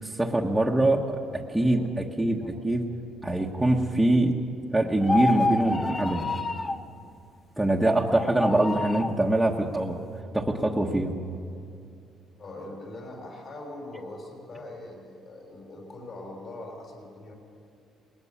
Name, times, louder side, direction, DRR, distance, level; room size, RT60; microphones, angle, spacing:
voice 1, 0.0-1.2 1.5-2.8 3.2-4.3 4.7-6.3 7.6-10.0 10.3-11.1, right 1 dB, 5° right, -3 dB, 1.3 m, -24 dB
sound 1, 5.0-6.9 8.2-9.2, left 3 dB, 20° left, 0.8 m, -28 dB
voice 2, 12.4-17.3, left 2 dB, 45° left, 1 dB, 6.0 m, -42 dB
20.0 x 19.5 x 7.3 m, 2.5 s
cardioid pair, 125°, 0 cm